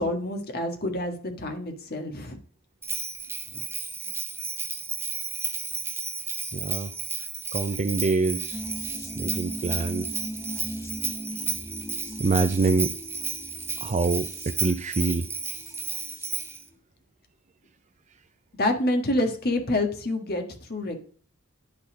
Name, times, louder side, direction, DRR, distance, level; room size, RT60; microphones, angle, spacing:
voice 1, 0.0-2.4 18.6-20.4 20.7-21.0, left 1 dB, 45° left, 5 dB, 1.6 m, -27 dB
Bell, 2.8-16.6, right 4 dB, 10° right, 0.8 m, -33 dB
voice 2, 6.5-6.9 7.5-8.6 9.1-10.1 12.2-12.9 13.8-15.3, right 3 dB, 35° right, 10 dB, 0.4 m, -25 dB
sound 1, 8.5-16.4 16.7-16.8, equal, 15° left, 1.2 m, -40 dB
11.0 x 4.2 x 5.0 m, 0.43 s
head